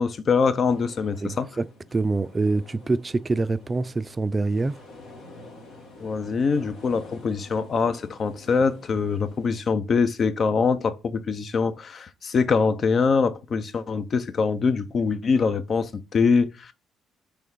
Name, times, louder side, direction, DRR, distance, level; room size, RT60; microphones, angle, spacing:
voice 1, 0.0-1.5 6.0-16.7, left 5 dB, 50° left, 0.6 m, -23 dB
sound 1, 0.6-9.6, left 2 dB, 75° left, 1.4 m, -48 dB
voice 2, 1.2-4.8, right 3 dB, 30° right, 0.3 m, -25 dB
3.5 x 3.3 x 4.6 m
hypercardioid pair, 55°, 0 cm